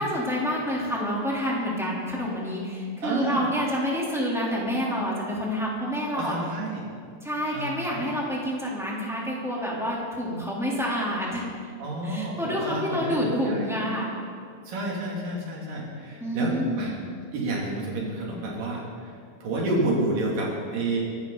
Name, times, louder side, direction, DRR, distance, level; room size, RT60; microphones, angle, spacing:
voice 1, 0.0-6.3 7.2-11.4 12.0-14.1 16.2-16.9, equal, ahead, -5 dB, 3.0 m, -28 dB
voice 2, 3.0-3.4 6.2-6.8 7.5-7.7 7.9-8.0 11.8-13.2 13.4-13.6 14.7-16.9 17.3-18.8 19.4-21.1, right 2 dB, 85° right, -3 dB, 4.5 m, -29 dB
23.0 x 13.0 x 4.0 m, 2.2 s
omnidirectional pair, 3.8 m